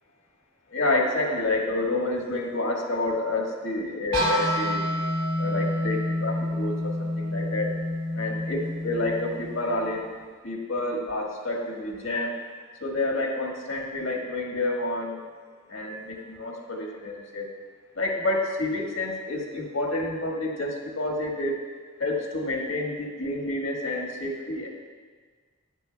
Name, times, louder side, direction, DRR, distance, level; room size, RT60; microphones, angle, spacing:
voice 1, 0.7-4.8 5.4-7.7 8.2-10.2 10.4-12.4 12.8-15.2 15.7-17.5 17.9-21.6 22.0-24.7, left 2 dB, 85° left, -1 dB, 1.5 m, -29 dB
sound 1, 4.1-9.9, left 1 dB, 65° right, 2.3 m, -28 dB
13.5 x 9.7 x 2.2 m, 1.5 s
head